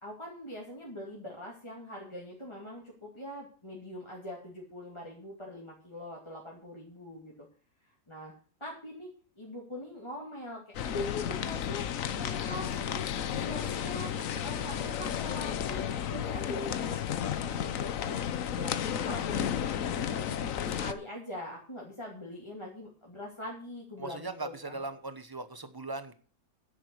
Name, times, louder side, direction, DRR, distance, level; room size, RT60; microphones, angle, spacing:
voice 1, 0.0-7.3 8.1-8.3 8.6-9.1 9.4-11.9 12.2-13.0 13.3-18.2 18.5-20.5 20.8-24.8, left 1 dB, 20° left, -3 dB, 2.5 m, -42 dB
sound 1, 10.7-20.9, left 9 dB, 70° left, 1.2 m, -33 dB
voice 2, 24.0-26.1, right 3 dB, 20° right, 11 dB, 0.8 m, -39 dB
10.0 x 7.6 x 6.3 m, 0.40 s
omnidirectional pair, 1.5 m